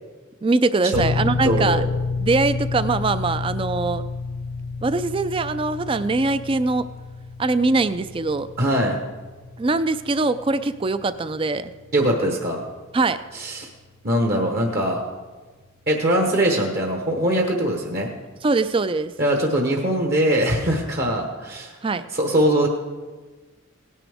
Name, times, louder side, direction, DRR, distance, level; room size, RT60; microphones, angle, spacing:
voice 1, 0.4-1.8 2.2-4.0 4.8-6.9 7.4-8.5 9.6-11.7 12.9-13.2 18.4-19.1 21.8-22.0, right 3 dB, 25° right, 13 dB, 0.3 m, -22 dB
sound 1, 0.9-15.3, left 4 dB, 85° left, 0.7 m, -31 dB
voice 2, 1.4-1.9 8.6-9.0 11.9-12.6 13.3-13.7 14.0-15.0 15.9-18.1 19.2-21.8 22.1-22.7, right 1 dB, 45° right, 1 dB, 1.1 m, -21 dB
17.5 x 9.9 x 3.5 m, 1.3 s
head